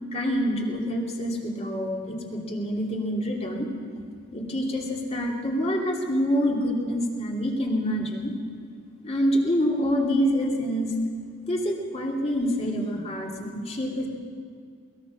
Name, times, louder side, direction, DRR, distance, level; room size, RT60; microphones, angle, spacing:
voice 1, 0.1-3.7 4.3-8.3 9.0-10.9 11.5-14.1, equal, 30° left, 0 dB, 2.7 m, -26 dB
21.5 x 19.5 x 6.4 m, 2.2 s
head